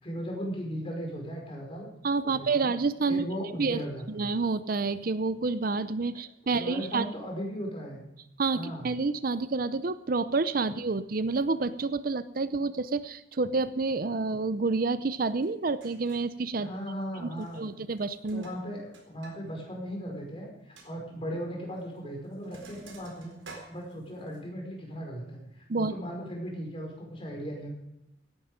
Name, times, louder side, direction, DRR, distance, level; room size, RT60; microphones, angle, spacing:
voice 1, 0.0-1.9 2.2-2.7 3.1-4.3 6.4-8.0 8.5-8.9 16.5-17.6 18.3-27.7, equal, 30° left, 0 dB, 5.2 m, -37 dB
voice 2, 2.0-3.3 3.6-3.8 4.1-7.0 8.4-16.7 17.2-17.3 17.6-18.4 25.7-25.9, right 3 dB, 50° right, 13 dB, 0.6 m, -29 dB
Sink (filling or washing), 15.4-15.5 15.8-16.3 17.3-17.7 18.0-19.4 19.7-19.8 20.2-20.3 20.8-20.9 21.8-22.0 22.2-24.4, right 3 dB, 75° right, 4.1 m, -51 dB
17.0 x 11.5 x 5.1 m, 0.87 s
head